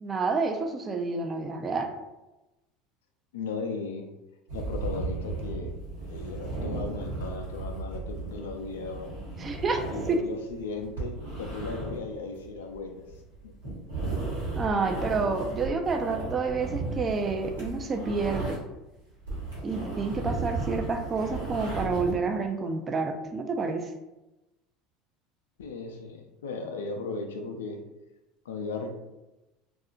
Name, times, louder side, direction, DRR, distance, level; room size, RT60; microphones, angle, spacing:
voice 1, 0.0-1.9 9.4-9.8 14.6-18.6 19.6-23.9, right 4 dB, 30° right, 5 dB, 0.4 m, -29 dB
voice 2, 3.3-4.1 4.5-5.7 6.1-9.1 9.9-13.0 13.4-13.6 25.6-27.8 28.5-28.9, left 4 dB, 75° left, 4 dB, 0.3 m, -36 dB
sound 1, 4.5-18.8 19.1-22.2, right 3 dB, 85° right, 1.1 m, -35 dB
2.7 x 2.3 x 2.4 m, 1.0 s
hypercardioid pair, 75°, 0 cm